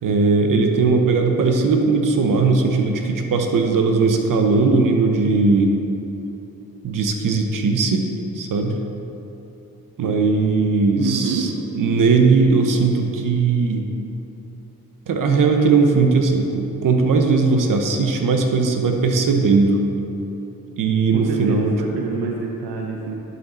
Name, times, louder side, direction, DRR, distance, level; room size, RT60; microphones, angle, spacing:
voice 1, 0.0-5.7 6.8-8.1 8.3-8.8 10.0-13.8 15.1-19.8 20.8-22.1, right 4 dB, 55° right, 4 dB, 0.9 m, -18 dB
voice 2, 11.0-11.4 21.1-23.1, right 5 dB, 80° right, 0 dB, 0.7 m, -27 dB
11.0 x 4.1 x 4.3 m, 2.9 s
supercardioid pair, 50°, 38 cm